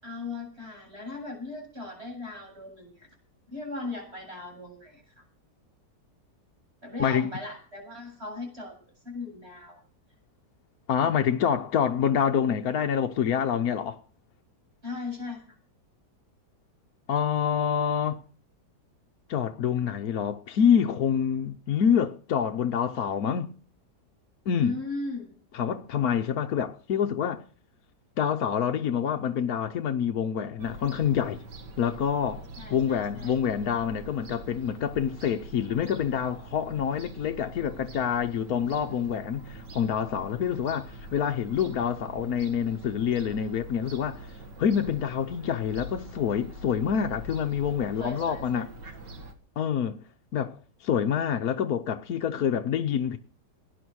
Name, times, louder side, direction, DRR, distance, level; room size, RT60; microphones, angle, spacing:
voice 1, 0.0-3.1 3.5-5.2 6.8-8.7 9.0-9.8 14.8-15.6 24.6-25.3 32.6-33.3 47.9-48.9, left 3 dB, 35° right, 8.0 m, -38 dB
voice 2, 7.0-7.3 10.9-14.0 17.1-18.2 19.3-23.5 24.5-24.7 25.5-27.4 28.2-31.4 31.8-32.4 32.7-44.3 44.6-48.7 49.6-50.0 50.3-53.2, left 8 dB, 65° left, 1.3 m, -27 dB
Fowl / Gull seagull, 30.6-49.3, right 1 dB, 80° right, 2.3 m, -44 dB
18.5 x 10.5 x 6.3 m
omnidirectional pair, 1.9 m